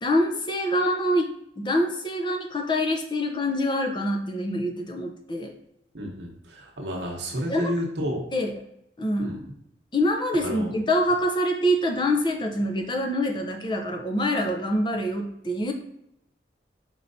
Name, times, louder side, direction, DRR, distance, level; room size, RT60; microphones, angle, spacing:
voice 1, 0.0-5.6 7.5-7.8 8.3-8.6 9.0-9.4 9.9-15.7, equal, 25° left, 3 dB, 0.5 m, -25 dB
voice 2, 5.9-8.2 9.2-9.4 10.4-10.7, equal, 75° right, -1 dB, 0.9 m, -31 dB
4.5 x 4.3 x 2.6 m, 0.78 s
head